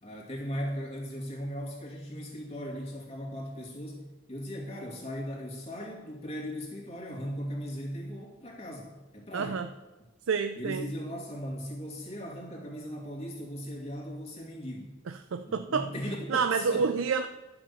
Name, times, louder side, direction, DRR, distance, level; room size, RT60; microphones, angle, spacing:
voice 1, 0.0-9.6 10.6-14.9 15.5-17.0, equal, 30° left, -3 dB, 2.4 m, -38 dB
voice 2, 9.3-9.7 10.3-10.9 15.1-15.9 16.3-17.3, right 5 dB, 85° right, 8 dB, 0.5 m, -28 dB
11.5 x 5.9 x 7.0 m, 1.1 s
head